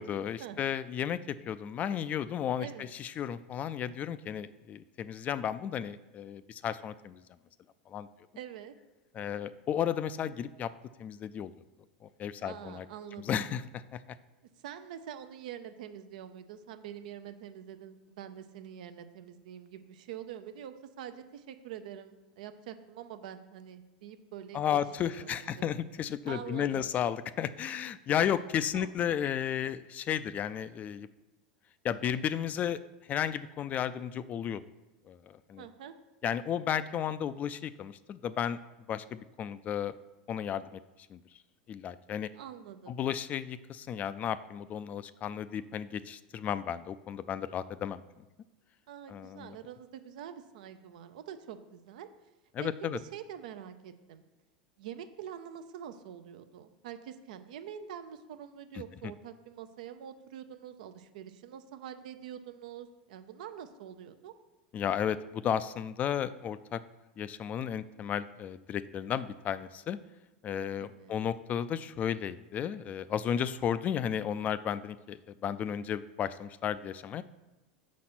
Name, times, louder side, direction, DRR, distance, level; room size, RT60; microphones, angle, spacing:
voice 1, 0.0-2.7 3.0-7.2 7.9-8.1 9.1-10.7 11.0-11.5 12.2-12.8 13.3-13.6 13.9-14.0 24.5-31.1 31.8-32.8 33.1-34.6 35.1-35.7 36.2-38.6 38.9-39.9 40.3-40.8 41.1-41.2 41.7-42.3 42.9-48.0 49.1-49.6 52.6-53.0 64.7-66.8 67.2-70.0 70.4-77.2, left 9 dB, 35° left, 15 dB, 0.3 m, -33 dB
voice 2, 8.4-8.8 12.4-13.5 14.6-24.6 25.1-25.6 26.3-26.8 28.3-28.4 28.7-28.9 35.6-36.0 42.3-43.0 48.9-52.1 52.6-54.2 54.8-64.3 70.8-71.2, right 9 dB, 75° right, 10 dB, 0.6 m, -45 dB
6.3 x 4.2 x 6.0 m, 1.0 s
hypercardioid pair, 105°, 4 cm